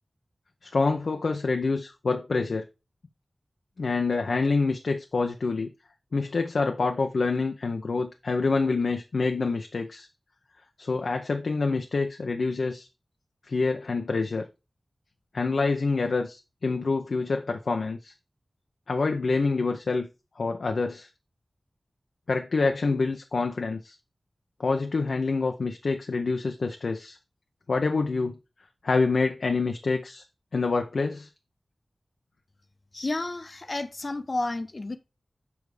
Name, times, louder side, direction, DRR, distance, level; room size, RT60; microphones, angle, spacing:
voice 1, 0.6-2.6 3.8-5.7 6.1-10.1 10.8-12.9 13.5-14.4 15.3-18.1 18.9-20.1 20.4-21.1 22.3-24.0 24.6-27.2 27.7-28.3 28.8-30.2 30.5-31.3, left 3 dB, 80° left, 0.6 m, -26 dB
voice 2, 32.9-35.0, left 2 dB, 45° left, 0.8 m, -31 dB
7.2 x 4.8 x 4.8 m
wide cardioid pair, 80°, 0 cm